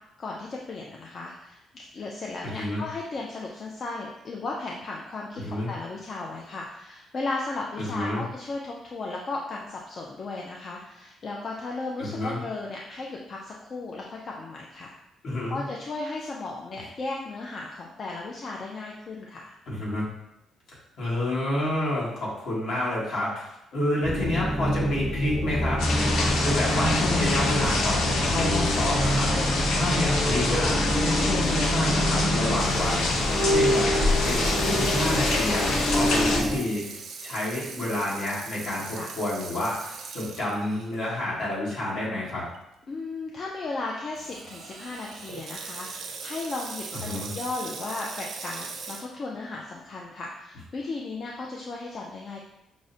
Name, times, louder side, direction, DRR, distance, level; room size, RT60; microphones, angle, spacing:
voice 1, 0.2-14.9 15.5-19.5 26.1-26.3 32.6-32.8 39.0-39.2 42.9-52.4, left 3 dB, 35° left, -2 dB, 0.4 m, -35 dB
voice 2, 2.4-2.8 5.3-5.7 7.8-8.2 12.0-12.4 15.2-15.6 19.7-20.0 21.0-25.8 26.4-33.0 33.4-33.9 34.2-36.8 37.2-42.4 46.9-47.3, left 1 dB, 55° left, -6 dB, 1.5 m, -29 dB
sound 1, 24.0-36.6, equal, 15° left, 0.8 m, -26 dB
sound 2, 25.8-36.4, left 2 dB, 75° left, 0.6 m, -26 dB
Water tap faucet / Sink (filling or washing), 32.6-41.0 41.4-41.5 42.3-42.6 44.1-49.0, right 5 dB, 50° right, 0.4 m, -40 dB
6.1 x 2.1 x 2.6 m, 0.86 s
cardioid pair, 175°, 0 cm